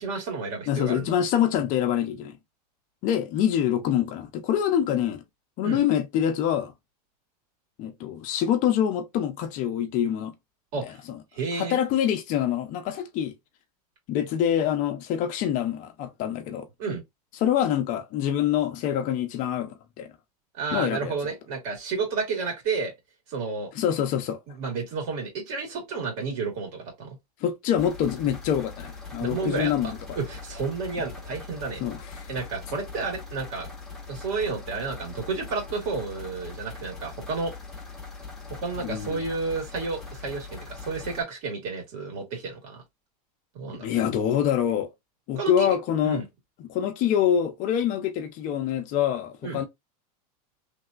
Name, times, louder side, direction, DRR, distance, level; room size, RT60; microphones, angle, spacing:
voice 1, 0.0-1.1 5.6-5.8 10.7-11.0 11.3-11.8 16.8-17.0 20.6-22.9 23.3-23.7 24.6-27.2 29.2-29.7 30.2-31.8 32.3-33.7 34.1-37.5 38.6-42.8 43.5-43.9 45.4-45.8 46.0-46.2 49.4-49.6, right 4 dB, 60° right, 2.1 m, -31 dB
voice 2, 0.7-2.4 3.0-5.2 5.6-6.7 7.8-10.3 10.8-11.2 11.5-13.3 14.1-16.7 17.4-20.1 20.7-21.1 23.7-24.4 27.4-30.2 31.8-32.3 38.8-39.2 43.8-44.9 45.3-46.2 46.6-49.6, left 10 dB, 40° left, 0.6 m, -25 dB
sound 1, 27.8-41.2, left 4 dB, ahead, 0.9 m, -41 dB
3.3 x 2.7 x 2.4 m
supercardioid pair, 135°, 20 cm